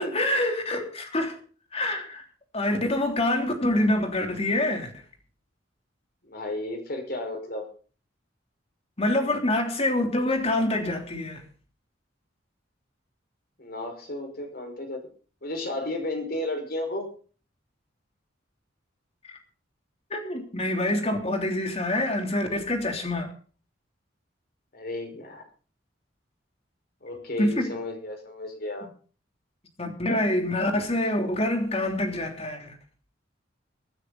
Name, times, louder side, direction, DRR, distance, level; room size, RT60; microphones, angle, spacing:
voice 1, 0.0-1.4 1.7-2.2 2.5-4.9 9.0-11.4 19.2-19.4 20.1-23.3 27.4-27.7 29.8-32.8, left 1 dB, 35° left, 3.3 m, -26 dB
voice 2, 6.2-7.7 13.6-15.0 15.4-17.1 24.7-25.4 27.0-28.9, left 1 dB, 55° left, 5.3 m, -33 dB
24.0 x 9.5 x 4.1 m
head